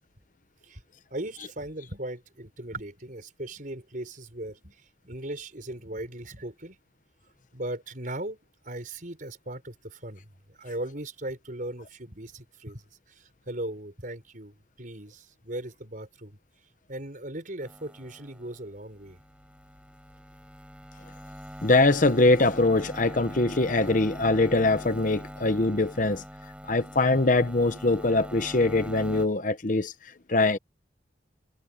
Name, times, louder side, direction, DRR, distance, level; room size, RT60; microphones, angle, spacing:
voice 1, 1.1-6.8 7.5-8.4 8.6-16.4 16.9-19.2, right 1 dB, 45° right, 5.5 m, -38 dB
sound 1, 17.6-29.3, equal, 5° right, 4.3 m, -42 dB
voice 2, 21.6-26.2 26.7-29.9 30.3-30.6, left 2 dB, 45° left, 1.0 m, -23 dB
head